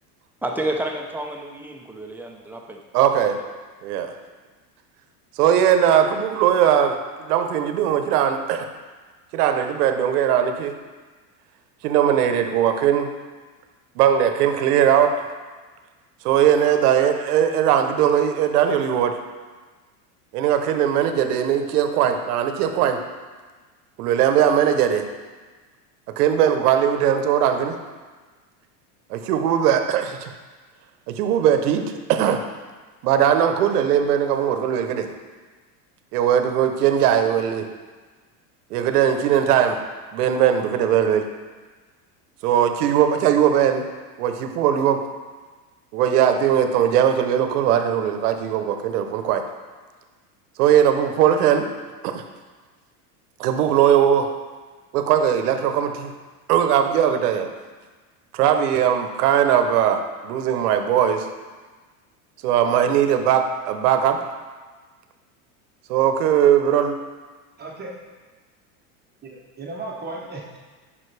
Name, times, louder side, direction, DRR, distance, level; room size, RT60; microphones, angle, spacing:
voice 1, 0.4-2.8, right 1 dB, 5° right, 1 dB, 0.6 m, -29 dB
voice 2, 2.9-3.4 3.8-4.1 5.4-8.7 9.3-10.7 11.8-13.1 14.0-15.1 16.2-19.2 20.3-23.0 24.0-25.1 26.2-27.8 29.1-30.3 31.1-32.4 33.0-35.1 36.1-37.7 38.7-39.8 40.1-41.2 42.4-43.9 44.2-45.0 45.9-49.4 50.6-51.7 52.0-52.2 53.4-54.3 54.9-56.1 56.5-57.5 58.3-61.3 62.4-64.2 65.9-67.0, right 9 dB, 80° right, 7 dB, 0.9 m, -19 dB
voice 3, 67.6-67.9 69.2-70.6, right 2 dB, 20° right, -2 dB, 1.0 m, -35 dB
9.4 x 5.7 x 3.3 m, 1.4 s
supercardioid pair, 125°, 45 cm